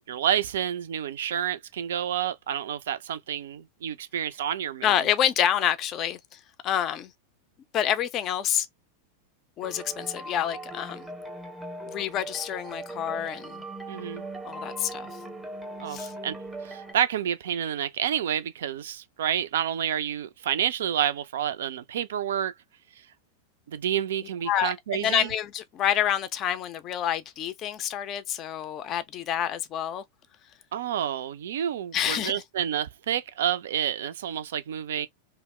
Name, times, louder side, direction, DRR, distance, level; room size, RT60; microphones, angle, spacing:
voice 1, 0.1-4.9 13.9-14.3 15.8-16.4 16.6-22.5 23.7-25.3 30.7-35.1, right 10 dB, 60° right, 0.3 m, -29 dB
voice 2, 4.8-7.1 7.7-8.7 9.6-11.1 11.9-13.6 14.4-15.2 15.9-16.1 24.5-30.0 31.9-32.4, left 10 dB, 35° left, 0.4 m, -28 dB
sound 1, 9.6-16.9, right 2 dB, 5° right, 0.7 m, -39 dB
2.8 x 2.0 x 3.1 m
figure-of-eight pair, 90°, 0 cm